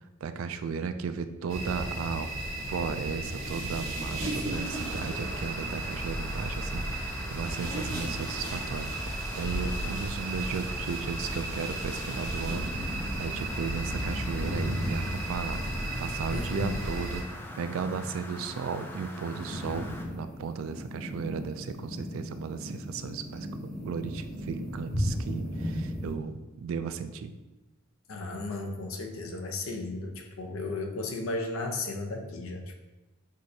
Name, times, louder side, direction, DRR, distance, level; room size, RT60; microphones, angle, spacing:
voice 1, 0.2-2.3 2.7-15.6 16.0-17.2 17.6-19.9 20.1-23.5 23.8-27.3, right 6 dB, 70° right, 10 dB, 0.3 m, -35 dB
sound 1, 1.5-17.2, right 1 dB, 90° right, 1.4 m, -34 dB
sound 2, 4.5-20.1, left 1 dB, 10° left, 0.3 m, -45 dB
sound 3, 12.4-26.1, equal, 45° left, 1.0 m, -36 dB
voice 2, 16.3-16.8 28.1-32.8, left 2 dB, 80° left, 3 dB, 0.6 m, -34 dB
6.1 x 2.5 x 2.7 m, 1.1 s
head